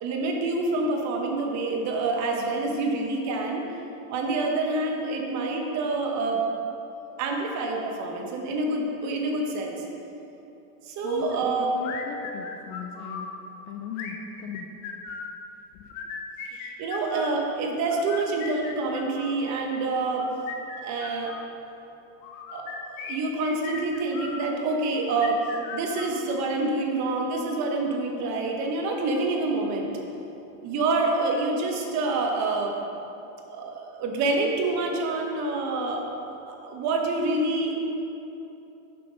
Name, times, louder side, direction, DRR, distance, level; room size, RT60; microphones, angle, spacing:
voice 1, 0.0-3.6 4.1-6.4 7.2-9.8 10.9-11.7 16.5-20.3 20.8-21.3 22.5-25.4 25.7-29.9 30.6-32.7 33.5-37.7, right 3 dB, 40° right, 1 dB, 1.1 m, -27 dB
voice 2, 11.0-13.3 13.6-14.7 15.8-15.9, left 6 dB, 35° left, 2 dB, 0.4 m, -38 dB
sound 1, 11.8-13.3 13.9-15.4 15.8-17.4 17.9-19.5 20.1-21.5 22.2-24.5 25.1-26.6, left 5 dB, 60° left, 0.9 m, -38 dB
6.7 x 5.8 x 5.2 m, 3.0 s
supercardioid pair, 140°, 41 cm